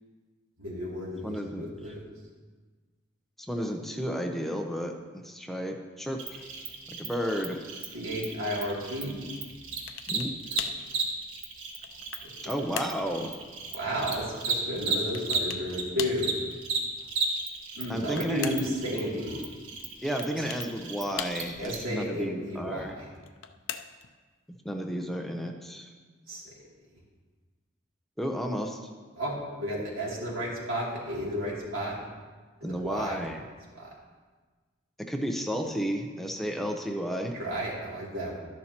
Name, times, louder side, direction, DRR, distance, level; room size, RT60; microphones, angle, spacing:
voice 1, 0.6-2.0 7.9-9.2 10.5-10.6 12.2-12.7 13.7-16.3 17.7-19.3 20.3-20.4 21.6-23.1 26.3-26.5 29.2-32.0 32.6-33.2 33.7-33.9 37.3-38.4, equal, 90° right, -4 dB, 2.8 m, -33 dB
voice 2, 1.2-1.6 3.4-6.4 6.9-7.6 10.1-10.3 12.4-13.4 17.9-18.7 20.0-22.9 24.6-25.9 28.2-28.8 32.6-33.4 35.1-37.4, equal, ahead, 2 dB, 0.6 m, -32 dB
Cricket, 6.2-15.8 16.1-21.7, right 4 dB, 70° right, 1.4 m, -34 dB
sound 1, 9.9-10.3 10.6-10.9 11.5-12.3 12.8-13.0 15.1-15.7 16.0-16.3 17.7-18.8 20.2-20.7 21.2-21.7 23.1-24.1, left 9 dB, 65° left, 0.5 m, -38 dB
12.0 x 10.5 x 2.9 m, 1.4 s
head